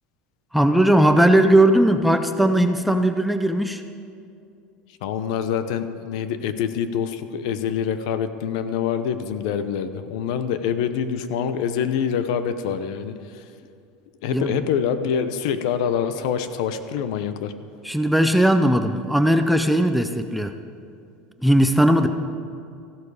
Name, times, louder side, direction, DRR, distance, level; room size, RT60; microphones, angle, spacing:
voice 1, 0.5-3.8 14.3-14.5 17.8-20.5 21.4-22.1, right 1 dB, ahead, 7 dB, 0.4 m, -18 dB
voice 2, 5.0-13.4 14.2-17.5, left 8 dB, 70° left, 11 dB, 0.8 m, -25 dB
14.5 x 11.5 x 4.9 m, 2.4 s
cardioid pair, 175°, 4 cm